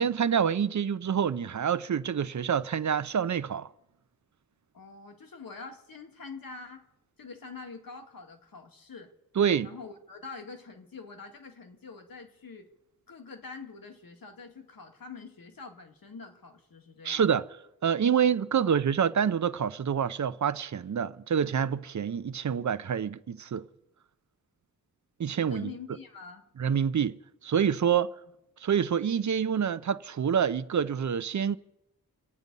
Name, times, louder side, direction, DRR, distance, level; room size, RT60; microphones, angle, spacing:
voice 1, 0.0-3.7 9.4-9.7 17.0-17.5 17.8-23.7 25.2-25.7 26.6-27.2 27.4-28.1 28.6-31.6, right 7 dB, 55° right, 0.6 m, -27 dB
voice 2, 4.7-6.9 7.2-9.1 9.6-12.7 13.1-17.4 18.5-18.7 25.4-26.4 27.9-28.1, left 4 dB, 80° left, 2.0 m, -45 dB
26.5 x 9.4 x 5.4 m
wide cardioid pair, 120°, 34 cm